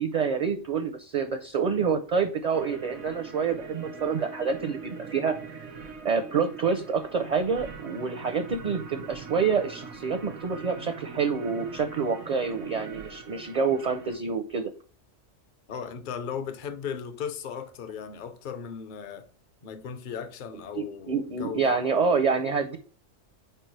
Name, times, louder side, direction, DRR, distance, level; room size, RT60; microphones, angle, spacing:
voice 1, 0.0-5.3 6.0-14.7 20.7-22.8, right 5 dB, 50° right, 0.5 m, -27 dB
sound 1, 2.5-14.2, right 5 dB, 90° right, 1.3 m, -42 dB
voice 2, 15.7-19.3 19.6-21.8, left 7 dB, 50° left, 0.8 m, -36 dB
4.7 x 4.6 x 4.5 m
omnidirectional pair, 1.2 m